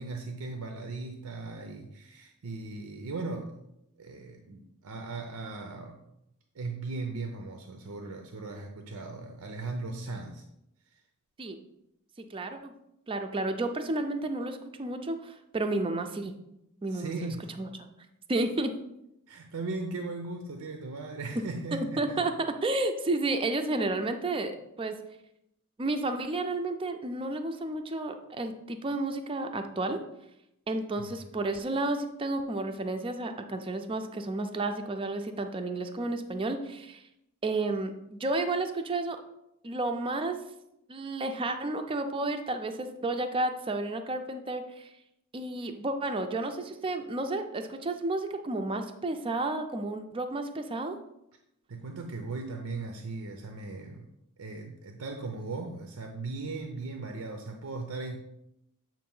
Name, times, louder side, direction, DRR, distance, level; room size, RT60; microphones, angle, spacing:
voice 1, 0.0-3.6 4.0-6.0 6.5-10.4 10.9-11.0 16.9-17.5 19.3-22.3 31.0-31.1 51.7-54.1 54.4-58.2, right 3 dB, 80° right, 4 dB, 0.6 m, -38 dB
voice 2, 12.3-12.7 13.1-16.3 16.8-17.3 17.6-17.7 18.3-18.7 21.7-22.3 22.6-24.5 24.8-24.9 25.8-30.0 30.7-37.0 37.4-39.2 39.6-40.4 40.9-44.9 45.3-51.0, right 2 dB, 25° right, 6 dB, 0.4 m, -31 dB
7.4 x 2.5 x 5.4 m, 0.84 s
head